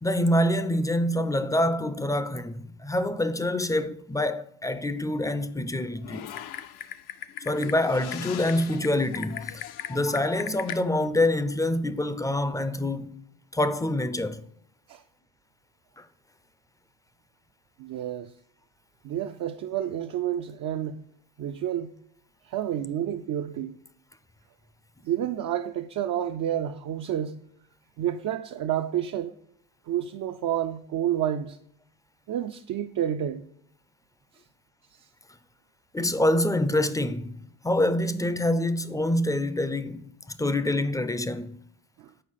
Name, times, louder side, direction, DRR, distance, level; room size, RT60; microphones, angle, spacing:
voice 1, 0.0-6.3 7.5-9.6 9.9-13.2 13.5-14.4 16.0-16.1 35.9-37.4 37.6-41.6, left 1 dB, 10° left, 0.4 m, -26 dB
Typing, 6.0-10.8, left 11 dB, 70° left, 0.6 m, -38 dB
voice 2, 17.8-18.3 19.0-21.0 21.4-21.9 22.4-23.8 25.0-27.4 28.0-29.3 29.9-31.6 32.3-33.5 34.9-35.1 42.0-42.1, right 10 dB, 55° right, 0.5 m, -29 dB
6.6 x 4.5 x 5.6 m
cardioid pair, 80°, 39 cm